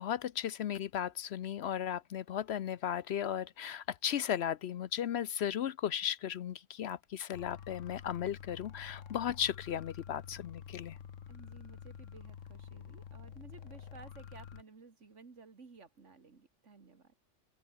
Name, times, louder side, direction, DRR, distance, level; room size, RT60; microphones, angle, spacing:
voice 1, 0.0-11.0, left 9 dB, 65° left, 0.8 m, -36 dB
sound 1, 7.3-14.6, left 8 dB, 80° left, 1.5 m, -49 dB
voice 2, 11.3-17.1, right 4 dB, 70° right, 2.5 m, -55 dB
open air
omnidirectional pair, 1.3 m